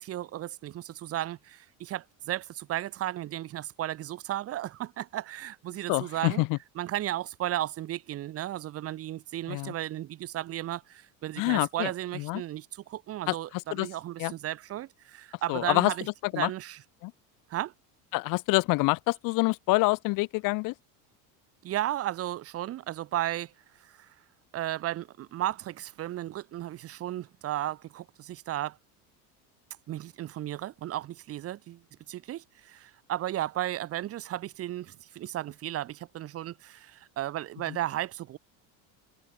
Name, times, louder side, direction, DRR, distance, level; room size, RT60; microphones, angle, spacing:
voice 1, 0.0-6.4 6.8-16.1 16.4-16.8 17.5-17.7 21.6-23.5 23.8-24.1 24.5-28.8 29.9-38.4, right 13 dB, 35° right, 2.1 m, -34 dB
voice 2, 5.9-6.6 9.5-9.7 11.4-12.4 13.3-13.4 13.7-13.9 14.2-14.3 15.5-15.9 16.3-16.5 17.0-17.1 18.1-20.7, left 24 dB, 55° left, 1.4 m, -26 dB
cardioid pair, 165°, 40 cm